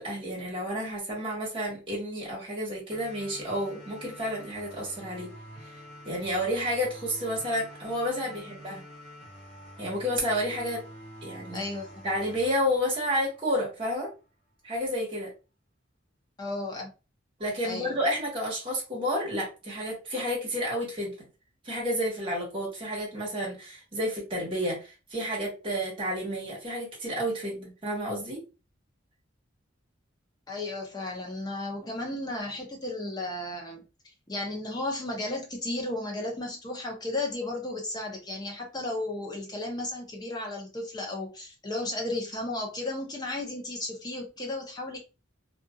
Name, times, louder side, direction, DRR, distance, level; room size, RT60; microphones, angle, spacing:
voice 1, 0.0-5.3 6.0-8.8 9.8-10.8 11.2-11.6 12.0-14.1 14.6-15.3 17.4-21.1 21.6-28.4, equal, 25° right, 1.3 m, -30 dB
sound 1, 2.9-13.9, equal, 35° left, 1.3 m, -47 dB
voice 2, 11.5-11.9 16.4-16.9 17.6-18.0 30.5-33.8 34.3-45.0, left 2 dB, 20° left, 0.7 m, -34 dB
2.6 x 2.5 x 2.3 m
head